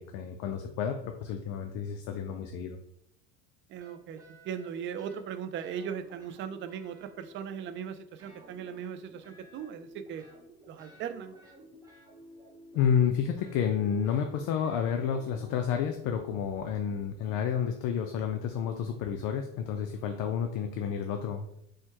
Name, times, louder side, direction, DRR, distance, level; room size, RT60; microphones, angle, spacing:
voice 1, 0.0-2.8 12.7-21.5, left 7 dB, 60° left, 5 dB, 0.5 m, -30 dB
voice 2, 3.7-4.2 4.4-10.2 10.7-11.4, right 8 dB, 35° right, 10 dB, 0.4 m, -38 dB
sound 1, 3.8-5.3 5.6-7.9 8.2-15.9, right 1 dB, 10° right, 0.8 m, -54 dB
4.4 x 2.2 x 4.5 m, 0.78 s
cardioid pair, 125°, 35 cm